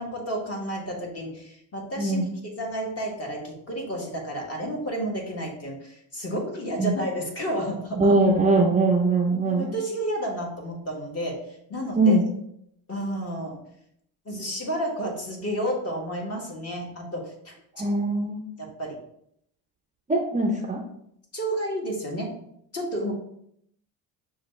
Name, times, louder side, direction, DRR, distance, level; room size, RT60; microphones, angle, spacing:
voice 1, 0.0-2.2 2.6-8.2 9.6-11.4 11.7-12.2 12.9-13.6 14.2-17.5 18.6-18.9 21.3-22.3 22.7-23.1, right 1 dB, 30° left, -1 dB, 1.5 m, -31 dB
voice 2, 2.0-2.3 6.8-6.9 8.0-9.7 11.9-12.2 17.8-18.4 20.1-20.8, right 2 dB, 15° right, 0 dB, 0.5 m, -21 dB
6.1 x 2.4 x 3.1 m, 0.72 s
supercardioid pair, 80°, 47 cm